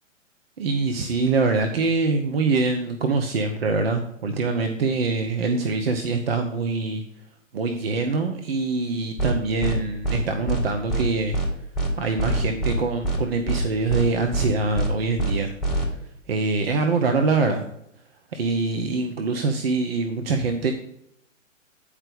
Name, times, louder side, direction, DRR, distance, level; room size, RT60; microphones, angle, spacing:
voice 1, 0.6-7.0 7.5-11.4 12.0-15.5 16.3-17.6 18.3-20.7, right 3 dB, 50° right, 5 dB, 0.8 m, -24 dB
sound 1, 9.2-9.3 9.6-9.8 10.0-10.2 10.5-10.6 10.9-11.0 11.3-11.5 11.7-11.9 12.2-12.8 13.0-13.2 13.5-13.6 13.9-14.0 14.3-14.5 14.7-14.9 15.2-15.3 15.6-15.8, right 2 dB, ahead, 1.3 m, -24 dB
8.8 x 5.0 x 5.1 m, 0.74 s
figure-of-eight pair, 125°, 39 cm